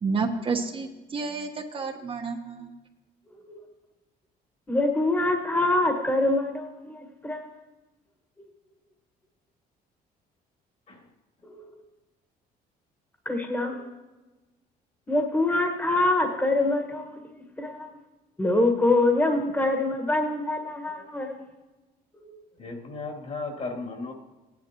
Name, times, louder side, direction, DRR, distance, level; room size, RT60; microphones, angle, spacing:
voice 1, 0.0-2.7, right 4 dB, 30° right, 3 dB, 1.1 m, -30 dB
voice 2, 4.7-7.5 11.5-11.6 13.2-13.9 15.1-17.3 17.6-17.9 18.4-21.4 22.2-22.4, left 2 dB, 10° left, 3 dB, 1.6 m, -25 dB
voice 3, 22.6-24.1, left 3 dB, 45° left, 1 dB, 2.7 m, -35 dB
16.5 x 10.5 x 3.0 m, 1.2 s
cardioid pair, 110°, 17 cm